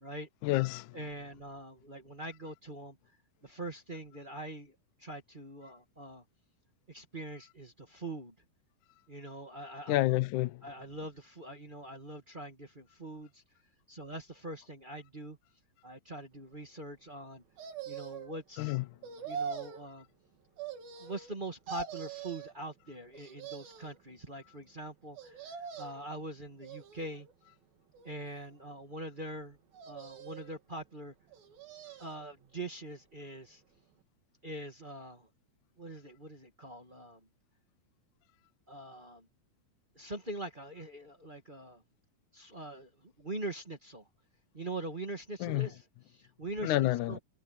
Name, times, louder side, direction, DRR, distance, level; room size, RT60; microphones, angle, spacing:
voice 1, 0.4-1.0 9.9-10.7 18.6-18.9 45.4-45.7 46.6-47.2, left 17 dB, 75° left, 1.9 m, -29 dB
voice 2, 0.9-3.0 3.4-4.7 5.0-6.2 6.9-8.3 9.1-10.0 10.6-13.4 13.9-15.4 15.8-17.4 17.8-18.8 19.2-20.0 21.0-27.3 28.0-29.6 29.8-31.1 32.0-33.6 34.4-35.3 35.8-37.2 38.7-39.3 39.9-41.8 42.3-44.0 44.5-45.8 46.1-47.2, right 1 dB, 30° right, 0.9 m, -43 dB
sound 1, 17.6-18.4 19.0-19.9 20.6-21.4 21.7-22.5 23.1-24.0 25.2-26.1 26.6-27.3 27.9-28.7 29.7-30.6 31.3-32.2 32.6-32.7, right 7 dB, 70° right, 4.5 m, -43 dB
omnidirectional pair, 4.4 m